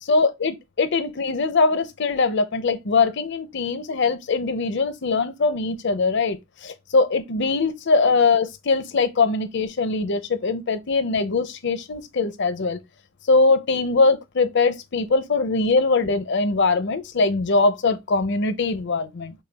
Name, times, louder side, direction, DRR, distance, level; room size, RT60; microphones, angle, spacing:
voice 1, 0.0-12.8 13.3-19.3, left 3 dB, 55° left, 0.6 m, -22 dB
5.5 x 2.3 x 3.4 m
head